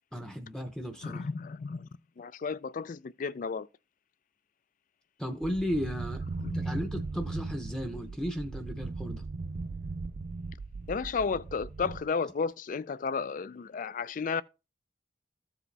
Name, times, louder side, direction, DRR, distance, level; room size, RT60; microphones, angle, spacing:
voice 1, 0.1-1.2 5.2-6.2 6.5-9.2, equal, 5° left, 0.8 m, -35 dB
voice 2, 1.0-1.9 2.2-3.7 6.4-6.8 10.9-14.4, left 5 dB, 45° left, 0.3 m, -33 dB
sound 1, 5.4-12.0, right 3 dB, 40° right, 0.4 m, -38 dB
14.5 x 4.9 x 3.3 m
head